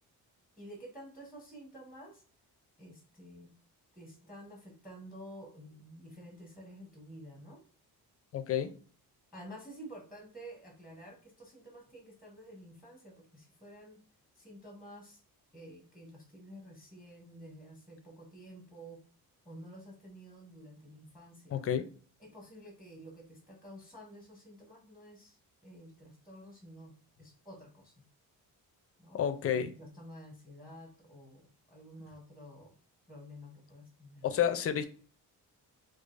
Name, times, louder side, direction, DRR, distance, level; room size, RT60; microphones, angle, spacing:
voice 1, 0.6-2.2 2.8-3.5 3.9-7.6 9.3-14.0 14.3-15.2 15.5-19.0 19.4-21.6 22.2-25.4 25.6-28.0 29.0-29.2 29.5-32.8 33.1-34.4, equal, ahead, 0 dB, 0.7 m, -51 dB
voice 2, 8.3-8.7 21.5-21.8 29.1-29.7 34.2-34.8, left 9 dB, 40° left, 9 dB, 0.4 m, -30 dB
4.7 x 2.4 x 2.4 m, 0.42 s
wide cardioid pair, 175°, 37 cm